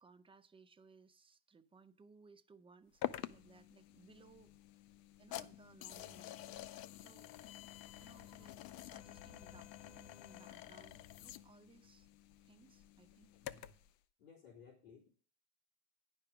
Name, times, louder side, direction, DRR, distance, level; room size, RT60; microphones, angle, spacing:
voice 1, 0.0-4.5 5.2-6.6 7.0-7.3 7.9-12.1 12.4-13.4, right 4 dB, 10° right, 0.6 m, -63 dB
sound 1, 3.0-13.9, left 13 dB, 50° left, 0.7 m, -49 dB
voice 2, 13.4-13.8 14.2-15.1, left 6 dB, 80° left, 3.7 m, -59 dB
10.5 x 5.4 x 5.8 m
supercardioid pair, 120°, 45 cm